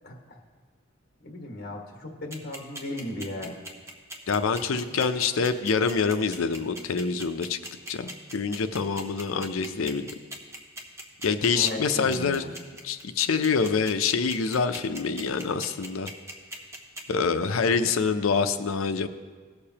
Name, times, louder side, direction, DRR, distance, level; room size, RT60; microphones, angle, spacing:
voice 1, 0.0-0.4 1.2-3.5 8.7-9.1 11.5-12.5, left 1 dB, 50° left, 1 dB, 1.3 m, -37 dB
sound 1, 2.3-17.0, right 1 dB, 15° right, 0.9 m, -39 dB
voice 2, 4.3-7.6 7.9-10.2 11.2-12.4 12.8-16.1 17.1-19.1, left 5 dB, 85° left, 9 dB, 0.5 m, -26 dB
17.5 x 6.7 x 2.9 m, 1.5 s
head